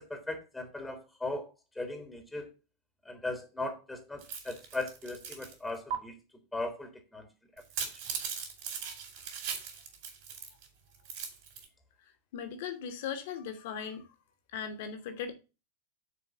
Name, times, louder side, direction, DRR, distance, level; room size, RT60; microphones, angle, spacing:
voice 1, 0.1-2.5 3.0-6.2 6.5-7.3, left 2 dB, 5° left, 1.4 m, -38 dB
sound 1, 4.2-5.5 5.9-6.0 7.6-10.6 10.9-11.7, right 7 dB, 50° right, 3.0 m, -39 dB
voice 2, 12.3-14.0 14.5-15.3, left 7 dB, 50° left, 1.6 m, -38 dB
6.8 x 4.7 x 6.9 m
figure-of-eight pair, 90°, 0 cm